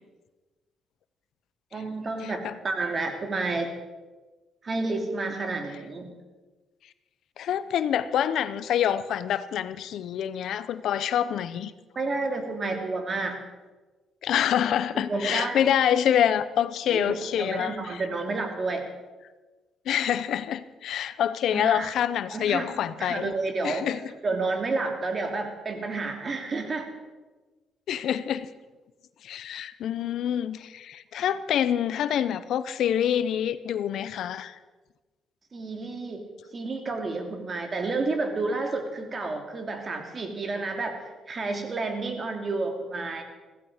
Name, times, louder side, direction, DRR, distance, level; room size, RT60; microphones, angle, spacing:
voice 1, 1.7-3.7 4.6-6.1 11.9-13.4 15.1-15.6 16.9-18.9 21.5-21.9 22.3-22.7 23.0-23.9 24.2-26.9 35.5-36.2 36.5-41.0 41.3-43.2, right 3 dB, 40° right, 4 dB, 2.8 m, -30 dB
voice 2, 2.2-2.5 7.4-11.7 14.2-18.0 19.9-23.3 23.6-24.1 27.9-28.5 29.2-34.6, left 9 dB, 75° left, 14 dB, 0.8 m, -26 dB
15.5 x 15.5 x 5.1 m, 1.2 s
cardioid pair, 90°, 0 cm